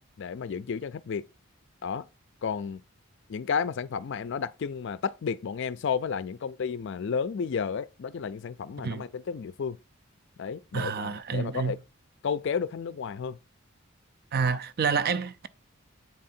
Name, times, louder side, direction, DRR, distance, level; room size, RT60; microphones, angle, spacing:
voice 1, 0.2-1.2 1.8-2.1 2.4-2.8 3.3-9.8 10.4-11.8 12.2-13.4 14.4-14.6, left 6 dB, 55° left, 0.4 m, -32 dB
voice 2, 10.7-11.8 14.3-15.5, right 5 dB, 45° right, 0.4 m, -28 dB
8.4 x 3.7 x 4.2 m
head